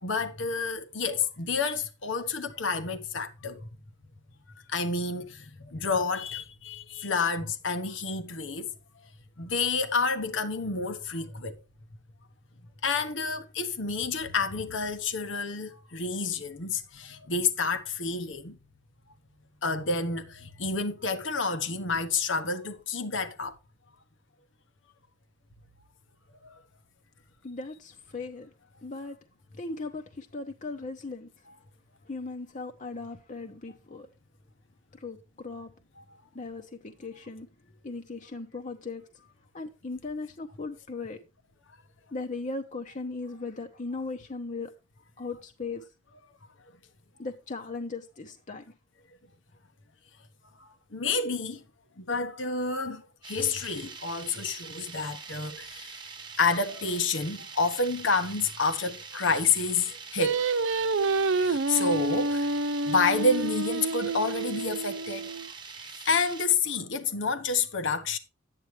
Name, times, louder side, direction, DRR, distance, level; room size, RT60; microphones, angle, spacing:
voice 1, 0.0-3.7 4.7-8.7 9.4-11.6 12.8-18.6 19.6-23.5 26.4-26.6 31.5-31.6 36.0-36.1 50.6-51.6 52.0-56.0 56.4-60.4 61.3-62.5 62.8-65.3 65.8-68.2, left 4 dB, 80° left, 1.2 m, -29 dB
voice 2, 27.4-28.5 28.8-29.2 29.6-31.3 32.1-34.1 34.9-35.7 36.3-37.5 37.8-39.0 39.5-41.2 42.1-44.7 45.2-45.8 47.2-48.6, left 3 dB, 40° left, 0.9 m, -38 dB
sound 1, 53.2-66.4, right 5 dB, 25° right, 1.1 m, -44 dB
Singing, 60.2-65.5, right 3 dB, 85° right, 0.6 m, -28 dB
11.5 x 9.1 x 3.1 m
head